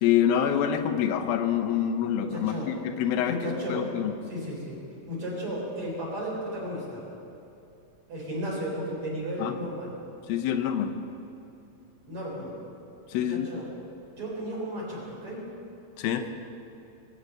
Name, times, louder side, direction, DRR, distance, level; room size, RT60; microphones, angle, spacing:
voice 1, 0.0-3.4 3.7-4.1 9.4-9.6 10.3-10.9 13.1-13.5 16.0-16.3, left 9 dB, 90° left, 7 dB, 2.7 m, -26 dB
voice 2, 2.2-2.7 3.2-3.9 4.3-4.8 5.1-7.0 8.1-10.0 12.1-12.6 13.3-13.7 14.2-15.5, equal, 40° right, -4 dB, 4.5 m, -34 dB
21.0 x 8.9 x 6.6 m, 2.8 s
omnidirectional pair, 4.1 m